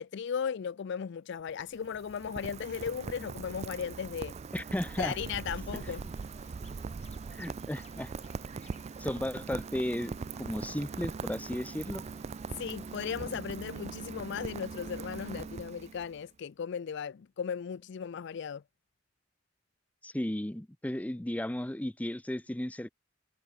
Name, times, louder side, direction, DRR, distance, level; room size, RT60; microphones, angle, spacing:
voice 1, 0.0-4.4 5.0-6.0 12.6-18.6, left 7 dB, 65° left, 0.4 m, -36 dB
Rain, 1.4-16.2, right 5 dB, 35° right, 0.3 m, -41 dB
voice 2, 4.5-5.2 5.8-5.9 7.3-8.1 9.0-12.0 20.0-22.9, left 1 dB, 10° left, 0.6 m, -35 dB
sound 1, 5.8-13.2, left 5 dB, 35° left, 6.7 m, -61 dB
head